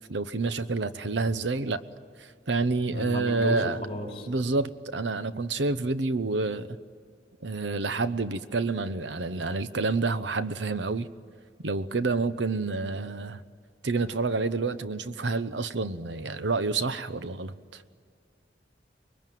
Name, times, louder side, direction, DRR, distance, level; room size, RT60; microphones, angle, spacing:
voice 1, 0.1-1.8 2.2-3.8 4.3-6.8 7.4-11.1 11.6-13.4 13.8-17.8, right 3 dB, 90° right, 13 dB, 0.9 m, -28 dB
voice 2, 2.9-4.3, equal, 30° left, 1 dB, 4.2 m, -33 dB
24.5 x 22.0 x 9.2 m, 2.1 s
head